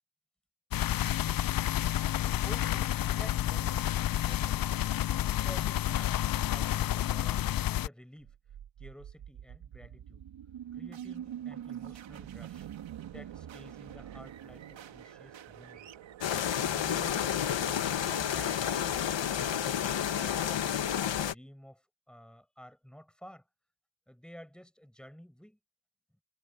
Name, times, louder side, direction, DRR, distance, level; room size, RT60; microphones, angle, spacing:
sound 1, 0.7-7.9, left 12 dB, 50° left, 0.5 m, -30 dB
voice 1, 1.9-4.8 5.2-8.4 8.8-10.3 10.7-12.7 13.0-15.9 20.2-23.4 24.1-25.6, equal, ahead, 7.7 m, -51 dB
sound 2, 8.2-19.3, right 10 dB, 85° right, 2.0 m, -45 dB
sound 3, 16.2-21.3, left 9 dB, 75° left, 2.2 m, -30 dB
cardioid pair, 100°, 45 cm